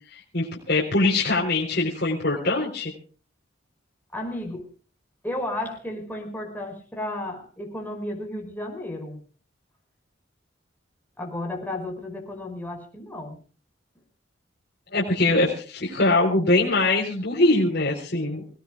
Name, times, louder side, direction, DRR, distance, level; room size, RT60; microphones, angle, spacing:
voice 1, 0.1-2.9 14.9-18.4, left 2 dB, 60° left, -4 dB, 4.1 m, -22 dB
voice 2, 4.1-4.6 5.2-9.2 11.2-13.4, left 1 dB, 10° left, 0 dB, 5.5 m, -33 dB
28.5 x 17.5 x 2.4 m, 0.40 s
head